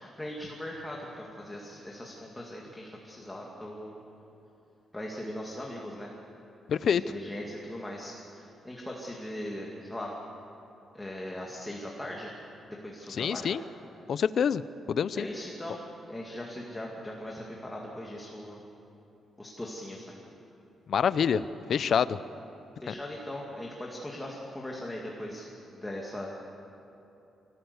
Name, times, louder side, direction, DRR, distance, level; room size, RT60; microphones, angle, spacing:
voice 1, 0.0-4.0 4.9-6.1 6.8-10.2 10.9-12.3 12.7-13.5 15.1-18.6 19.4-20.2 22.8-26.3, left 1 dB, 10° left, -2 dB, 2.0 m, -39 dB
voice 2, 6.7-7.0 13.1-13.6 14.1-14.6 14.9-15.3 20.9-22.2 22.9-23.0, left 7 dB, 50° left, 15 dB, 0.6 m, -26 dB
24.5 x 17.5 x 8.1 m, 2.9 s
wide cardioid pair, 165°, 0 cm